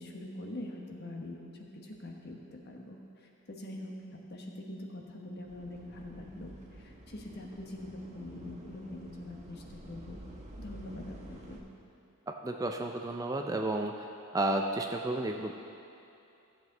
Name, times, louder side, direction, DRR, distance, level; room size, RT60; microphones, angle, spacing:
voice 1, 0.0-10.2 10.6-11.6, left 1 dB, 50° left, 0 dB, 1.2 m, -44 dB
sound 1, 5.5-11.6, right 1 dB, 30° right, 1.1 m, -50 dB
voice 2, 12.3-14.1 14.3-15.5, right 2 dB, 15° right, 3 dB, 0.4 m, -32 dB
15.0 x 7.7 x 3.9 m, 2.7 s
head